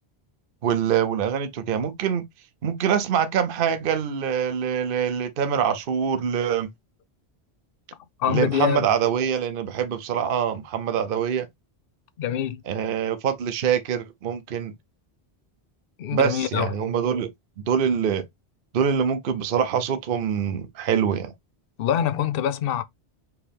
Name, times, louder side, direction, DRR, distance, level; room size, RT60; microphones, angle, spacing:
voice 1, 0.6-2.2 2.6-6.7 8.3-11.5 12.7-14.7 16.1-17.3 17.6-18.2 18.7-21.3, right 8 dB, 60° right, 0.8 m, -24 dB
voice 2, 8.2-8.8 12.2-12.6 16.0-16.7 21.8-22.8, left 9 dB, 65° left, 0.7 m, -24 dB
4.6 x 3.1 x 3.4 m
omnidirectional pair, 1.1 m